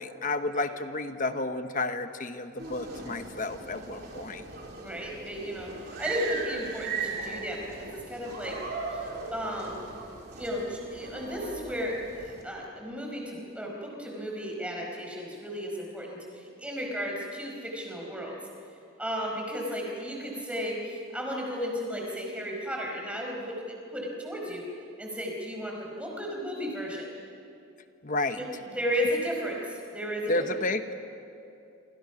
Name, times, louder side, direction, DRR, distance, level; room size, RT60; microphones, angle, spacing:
voice 1, 0.0-4.4 28.0-28.4 30.3-30.9, left 2 dB, 40° left, 9 dB, 1.1 m, -31 dB
sound 1, 2.6-12.4, right 4 dB, 50° right, 3.7 m, -38 dB
voice 2, 4.8-8.5 8.9-9.7 10.4-11.9 12.2-18.4 19.0-23.6 23.9-24.6 25.0-27.1 28.3-28.5 28.7-30.6, equal, 5° right, -1 dB, 4.9 m, -34 dB
27.0 x 27.0 x 6.0 m, 2.6 s
head